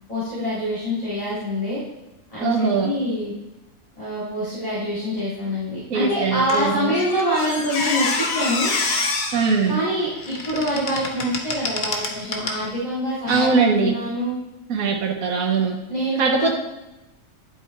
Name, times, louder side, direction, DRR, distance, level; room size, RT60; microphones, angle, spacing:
voice 1, 0.1-1.8 2.3-3.3 4.0-8.7 9.7-14.3 15.9-16.5, equal, 25° left, -12 dB, 2.3 m, -25 dB
voice 2, 2.4-2.9 5.9-6.9 9.3-9.8 13.3-13.9 14.7-15.8 16.2-16.5, right 5 dB, 80° right, 1 dB, 1.2 m, -21 dB
Squeak, 6.5-12.6 13.3-13.5, left 3 dB, 75° left, 1.4 m, -27 dB
11.0 x 3.9 x 4.2 m, 0.94 s
omnidirectional pair, 1.5 m